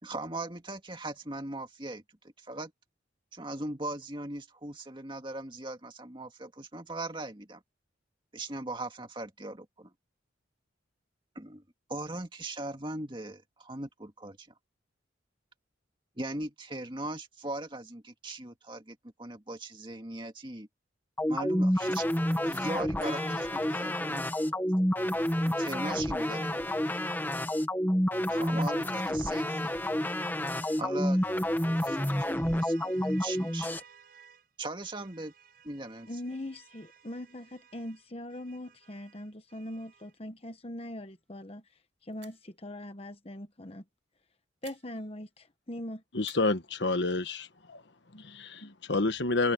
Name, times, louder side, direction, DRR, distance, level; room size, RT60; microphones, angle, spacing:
voice 1, 0.0-2.0 2.4-2.7 3.3-7.6 8.3-9.9 11.4-11.6 11.9-14.5 16.2-20.7 21.3-22.1 22.4-24.6 25.6-26.7 28.3-29.7 30.8-31.2 31.8-33.8 34.6-35.3 35.6-36.1, right 2 dB, 25° right, 2.1 m, -39 dB
sound 1, 21.2-33.8, left 1 dB, 10° left, 1.5 m, -29 dB
voice 2, 23.0-24.1 36.1-41.6 42.0-43.8 44.6-46.0, left 1 dB, 30° left, 1.2 m, -41 dB
sound 2, 27.8-34.5 34.8-40.2, right 6 dB, 50° right, 6.5 m, -58 dB
sound 3, 40.9-41.3 41.5-41.6 42.1-42.6 44.6-45.5 46.2-47.4, right 12 dB, 70° right, 7.8 m, -58 dB
voice 3, 46.1-47.8 48.1-49.5, left 3 dB, 65° left, 1.4 m, -29 dB
open air
head